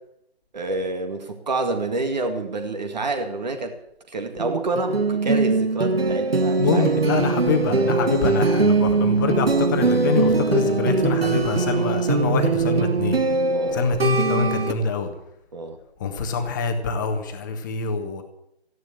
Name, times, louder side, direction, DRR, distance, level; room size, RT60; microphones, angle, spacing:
voice 1, 0.5-3.7 4.1-6.9 13.5-13.8 15.5-15.8, right 2 dB, 40° right, 6 dB, 2.1 m, -28 dB
sound 1, 4.4-14.7, right 4 dB, 65° right, 1.8 m, -21 dB
voice 2, 6.6-13.2 13.7-15.1 16.0-18.2, left 4 dB, 20° left, 5 dB, 1.5 m, -25 dB
14.5 x 11.0 x 8.5 m, 0.77 s
figure-of-eight pair, 155°, 32 cm